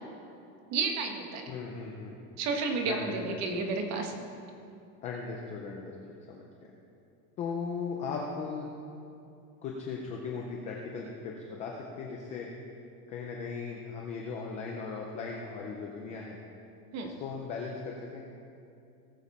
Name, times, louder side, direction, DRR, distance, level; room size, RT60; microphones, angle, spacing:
voice 1, 0.7-1.5 2.4-4.1 16.9-17.1, right 4 dB, 35° right, 4 dB, 1.3 m, -31 dB
voice 2, 1.5-2.2 2.8-3.4 5.0-6.4 7.4-8.7 9.6-12.5 13.1-16.4 17.0-18.2, left 5 dB, 15° left, -1 dB, 0.3 m, -38 dB
18.5 x 7.1 x 4.2 m, 2.6 s
supercardioid pair, 160°, 47 cm